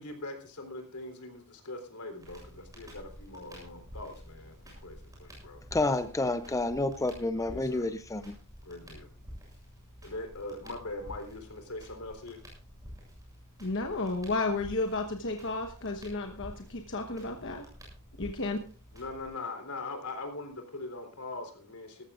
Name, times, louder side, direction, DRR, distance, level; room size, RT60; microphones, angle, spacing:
voice 1, 0.0-5.6 7.3-7.9 8.6-9.1 10.0-12.4 18.9-22.0, left 2 dB, 80° left, 3.7 m, -41 dB
Crackle, 2.2-19.3, equal, 15° right, 7.5 m, -50 dB
voice 2, 5.7-8.4, left 2 dB, 15° left, 0.5 m, -29 dB
voice 3, 13.6-17.7 18.2-18.6, left 3 dB, 60° left, 1.1 m, -32 dB
19.0 x 14.5 x 2.5 m
head